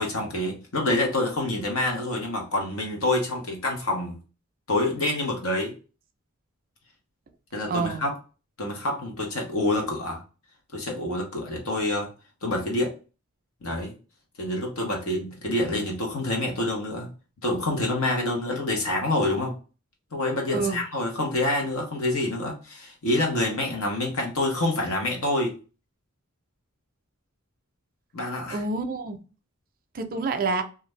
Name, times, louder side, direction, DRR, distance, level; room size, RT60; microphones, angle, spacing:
voice 1, 0.0-4.2 4.7-5.7 7.5-8.1 8.6-10.2 10.7-12.1 12.4-12.9 13.6-13.9 14.4-17.1 17.4-19.5 20.1-25.5 28.1-28.6, left 1 dB, 80° left, 1.0 m, -27 dB
voice 2, 7.7-8.0 20.5-20.8 28.5-29.2 29.9-30.6, right 3 dB, 45° right, 0.4 m, -27 dB
2.5 x 2.3 x 3.1 m
head